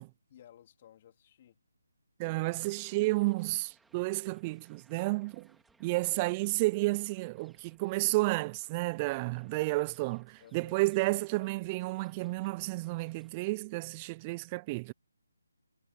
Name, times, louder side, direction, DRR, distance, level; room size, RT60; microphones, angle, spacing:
voice 1, 0.3-1.6 5.9-6.4 10.4-10.8, left 11 dB, 35° left, 3.7 m, -58 dB
voice 2, 2.2-5.5 5.8-14.9, right 23 dB, 20° right, 0.5 m, -31 dB
sound 1, 2.6-13.3, right 3 dB, 5° right, 2.0 m, -68 dB
figure-of-eight pair, 155°, 0 cm